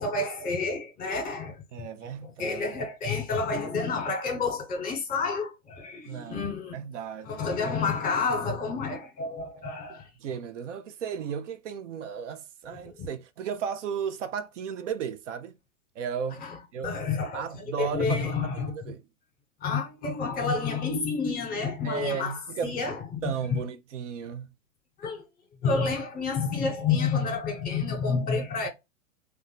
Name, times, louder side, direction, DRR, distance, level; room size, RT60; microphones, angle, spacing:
voice 1, 0.0-1.6 2.2-6.7 7.3-10.1 13.0-13.1 16.4-16.6 16.8-18.7 19.6-23.6 25.0-25.2 25.6-28.7, left 4 dB, 20° left, 1.1 m, -29 dB
voice 2, 1.7-2.8 6.1-7.4 10.2-15.5 16.0-16.4 16.7-16.9 17.3-19.0 21.8-22.7 23.2-24.5, right 7 dB, 65° right, 0.6 m, -35 dB
2.5 x 2.3 x 4.0 m
hypercardioid pair, 120°, 40 cm